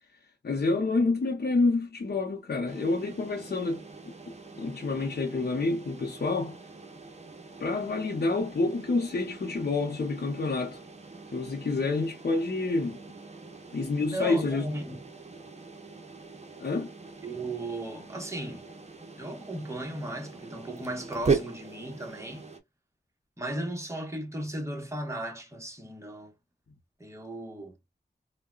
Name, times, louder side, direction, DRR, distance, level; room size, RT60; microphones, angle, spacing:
voice 1, 0.4-3.8 4.6-6.6 7.6-10.8 11.3-13.0 13.7-14.7 16.6-16.9, left 3 dB, 65° left, 0.8 m, -28 dB
sound 1, 2.7-22.6, right 5 dB, 40° right, 0.8 m, -39 dB
voice 2, 14.1-15.0 17.2-18.6 19.2-22.5 23.4-26.3 27.0-27.8, right 1 dB, 15° right, 1.1 m, -36 dB
3.7 x 2.2 x 2.3 m
cardioid pair, 50°, 18 cm